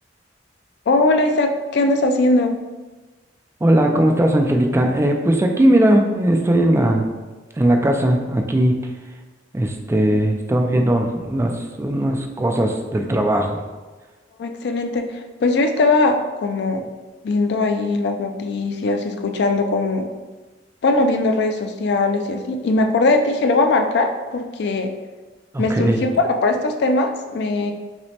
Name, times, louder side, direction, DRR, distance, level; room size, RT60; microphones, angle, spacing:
voice 1, 0.9-2.6 14.4-16.9 17.2-20.1 20.8-24.9 25.6-27.7, left 2 dB, 65° left, 6 dB, 0.4 m, -20 dB
voice 2, 3.6-7.1 7.5-8.9 9.5-13.6 25.5-26.0, right 1 dB, 15° right, 3 dB, 0.3 m, -18 dB
5.9 x 2.1 x 2.8 m, 1.2 s
head